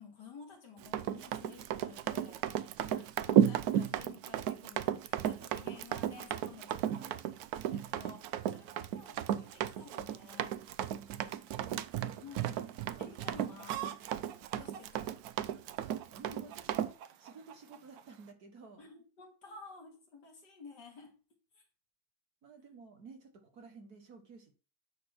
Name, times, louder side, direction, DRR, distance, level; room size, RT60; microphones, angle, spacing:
voice 1, 0.0-7.2 7.7-10.6 12.0-14.0 14.5-15.2 18.8-21.2 21.5-21.6, left 4 dB, 55° left, 2 dB, 2.6 m, -53 dB
Run, 0.8-16.9, right 10 dB, 90° right, 0.8 m, -34 dB
Chicken rooster, 5.4-18.3, right 11 dB, 70° right, 1.5 m, -52 dB
voice 2, 6.8-7.4 11.1-12.3 12.9-13.1 15.8-18.9 22.4-24.5, right 4 dB, 50° right, 5 dB, 1.6 m, -54 dB
9.5 x 4.2 x 6.0 m, 0.35 s
omnidirectional pair, 2.2 m